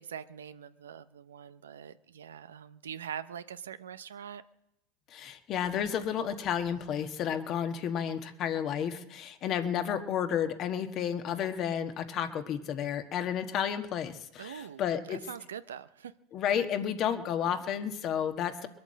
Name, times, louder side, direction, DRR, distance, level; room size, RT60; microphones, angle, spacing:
voice 1, 0.0-4.4 14.4-14.8 15.1-16.1, right 8 dB, 90° right, 13 dB, 0.7 m, -43 dB
voice 2, 5.1-15.2 16.3-18.7, left 8 dB, 45° left, 8 dB, 1.4 m, -31 dB
21.5 x 8.7 x 7.6 m, 0.85 s
hypercardioid pair, 100°, 0 cm